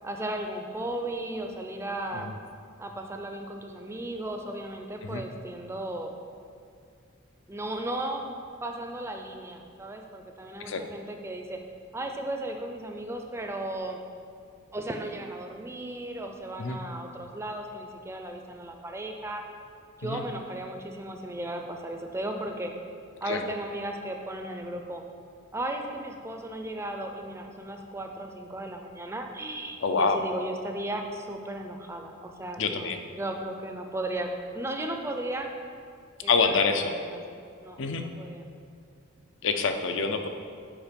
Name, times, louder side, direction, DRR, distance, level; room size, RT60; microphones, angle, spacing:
voice 1, 0.0-2.3 2.8-6.1 7.5-8.2 8.6-11.6 11.9-14.0 14.7-19.4 20.0-22.7 23.2-25.0 25.5-35.5 36.2-36.7 37.0-38.5, right 1 dB, 10° right, 3 dB, 0.5 m, -35 dB
voice 2, 29.8-30.2 32.6-33.0 36.3-36.9 37.8-38.1 39.4-40.3, left 4 dB, 60° left, 7 dB, 0.5 m, -26 dB
7.2 x 4.9 x 5.2 m, 2.3 s
head